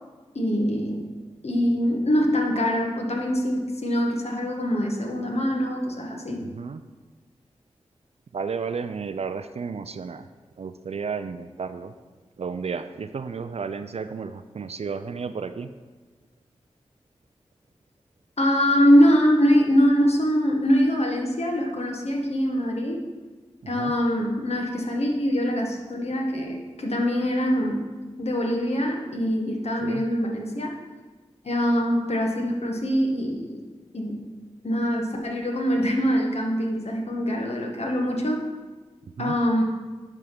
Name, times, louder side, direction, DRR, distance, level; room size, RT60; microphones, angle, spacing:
voice 1, 0.3-1.0 1.4-6.4 18.4-23.0 23.7-27.8 28.2-30.8 31.4-33.6 33.9-34.3 34.6-38.4 39.2-39.6, equal, 60° left, 1 dB, 1.4 m, -23 dB
voice 2, 6.4-6.8 8.3-10.3 10.6-11.9 12.4-15.7 23.8-23.9 29.8-30.1 39.2-39.4, right 5 dB, 60° right, 10 dB, 0.4 m, -32 dB
9.9 x 3.6 x 6.0 m, 1.3 s
cardioid pair, 40°, 12 cm